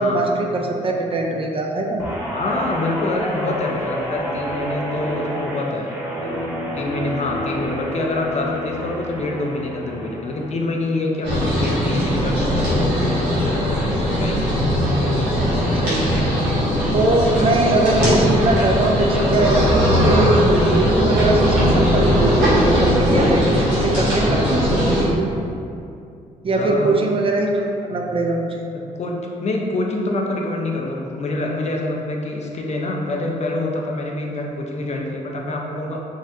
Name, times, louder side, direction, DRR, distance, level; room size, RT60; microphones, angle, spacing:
voice 1, 0.0-2.0 15.8-16.3 16.9-25.3 26.4-28.7, right 2 dB, 30° right, 1 dB, 0.4 m, -21 dB
Guitar, 2.0-10.6 11.0-11.3, equal, 15° right, 0.9 m, -29 dB
voice 2, 2.3-6.5 6.7-14.6 26.5-26.9 28.9-36.0, left 2 dB, 40° left, 0 dB, 0.5 m, -26 dB
sound 1, 11.2-25.0, equal, 85° right, 1.0 m, -19 dB
3.6 x 2.1 x 2.7 m, 2.5 s
hypercardioid pair, 45°, 17 cm